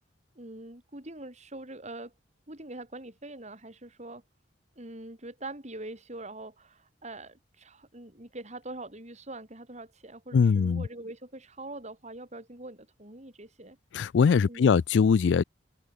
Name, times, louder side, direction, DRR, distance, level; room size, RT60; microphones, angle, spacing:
voice 1, 0.3-2.1 2.5-4.2 4.7-13.8 14.5-14.8, right 2 dB, 40° right, 5.0 m, -43 dB
voice 2, 10.3-10.8 13.9-15.4, left 6 dB, 75° left, 0.4 m, -22 dB
head